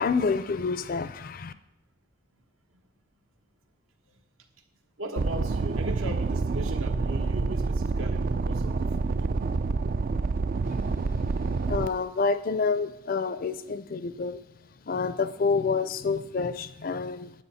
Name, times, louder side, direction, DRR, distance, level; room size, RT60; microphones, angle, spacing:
voice 1, 0.0-1.5 10.6-11.2 11.7-14.4 14.9-17.3, left 4 dB, 40° left, 13 dB, 0.4 m, -28 dB
voice 2, 5.0-9.3, right 1 dB, 75° right, 5 dB, 1.2 m, -37 dB
sound 1, 5.2-11.9, right 4 dB, 40° right, 0.3 m, -27 dB
9.6 x 8.0 x 5.6 m, 0.83 s
head